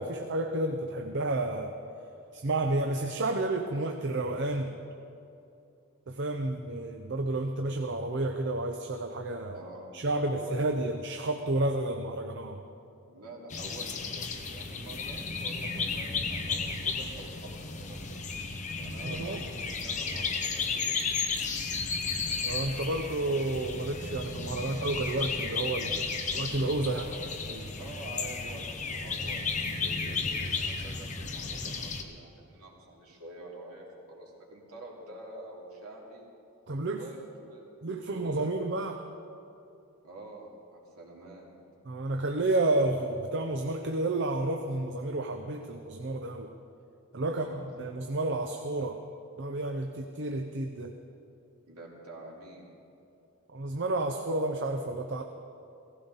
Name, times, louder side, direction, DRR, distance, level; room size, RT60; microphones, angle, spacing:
voice 1, 0.0-1.7 2.3-4.8 6.1-9.6 9.9-12.6 19.0-19.4 22.4-27.0 27.5-27.6 36.7-37.0 37.8-39.0 41.9-46.5 47.1-47.5 47.8-49.0 49.4-50.9 53.5-55.2, right 2 dB, 55° right, 5 dB, 0.7 m, -31 dB
voice 2, 9.4-10.6 13.1-21.0 26.9-27.3 27.8-36.3 37.0-37.6 38.0-38.5 40.0-41.5 47.2-47.7 51.7-52.7, right 1 dB, 85° right, -3 dB, 2.8 m, -47 dB
sound 1, 13.5-32.0, left 4 dB, 35° left, 1.0 m, -34 dB
16.5 x 15.5 x 4.0 m, 2.7 s
head